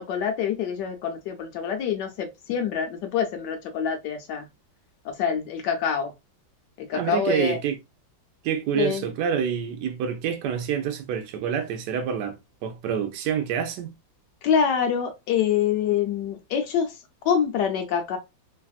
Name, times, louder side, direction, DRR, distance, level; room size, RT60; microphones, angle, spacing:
voice 1, 0.0-4.5 5.0-6.1 6.8-7.6 8.7-9.1 14.4-16.9 17.2-18.2, left 7 dB, 70° left, 1.1 m, -26 dB
voice 2, 6.9-7.8 8.4-13.9, right 8 dB, 70° right, 1.2 m, -27 dB
3.3 x 2.4 x 2.3 m
omnidirectional pair, 2.1 m